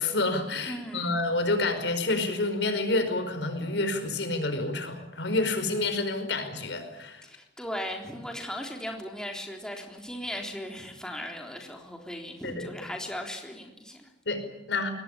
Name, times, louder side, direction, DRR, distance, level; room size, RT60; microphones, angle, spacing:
voice 1, 0.0-7.2 12.4-12.7 14.2-14.9, left 2 dB, 90° left, 8 dB, 5.0 m, -28 dB
voice 2, 0.7-1.2 7.2-14.1, equal, 5° left, 2 dB, 3.6 m, -37 dB
23.0 x 19.0 x 10.0 m, 0.95 s
head